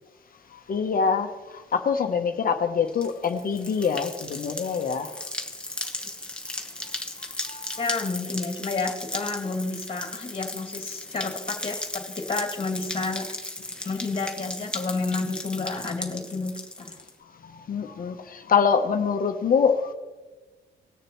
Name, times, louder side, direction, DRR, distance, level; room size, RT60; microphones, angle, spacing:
voice 1, 0.7-5.1 7.5-7.7 17.7-19.9, left 6 dB, 45° left, 6 dB, 0.9 m, -24 dB
sound 1, 2.9-17.1, left 1 dB, 5° left, 1.0 m, -36 dB
voice 2, 7.8-13.2 13.8-17.0, left 3 dB, 30° left, 3 dB, 2.1 m, -30 dB
19.5 x 6.7 x 3.0 m, 1.3 s
cardioid pair, 90°, 20 cm